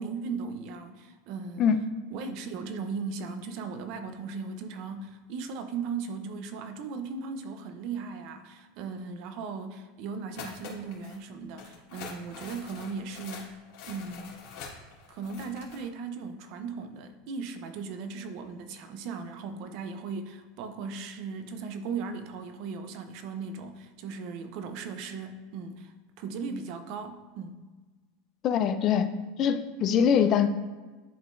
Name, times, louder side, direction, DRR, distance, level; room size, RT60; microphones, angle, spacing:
voice 1, 0.0-1.7 2.1-13.6 13.9-14.4 15.1-27.6, right 5 dB, 45° right, 8 dB, 0.6 m, -37 dB
sound 1, 10.3-11.2 11.6-15.8, left 5 dB, 55° left, 1.8 m, -44 dB
voice 2, 28.4-29.1 29.4-30.5, left 8 dB, 30° left, 10 dB, 0.4 m, -23 dB
11.0 x 3.8 x 2.6 m, 1.3 s
supercardioid pair, 165°, 0 cm